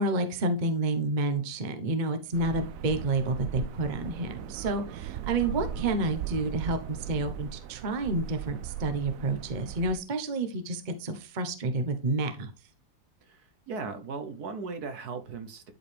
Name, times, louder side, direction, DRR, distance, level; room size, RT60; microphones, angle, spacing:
voice 1, 0.0-12.5, right 2 dB, 35° right, 0.9 m, -29 dB
sound 1, 2.3-10.0, right 9 dB, 85° right, 0.7 m, -38 dB
voice 2, 13.2-15.7, right 4 dB, 60° right, 1.4 m, -38 dB
11.5 x 4.8 x 3.3 m
omnidirectional pair, 2.1 m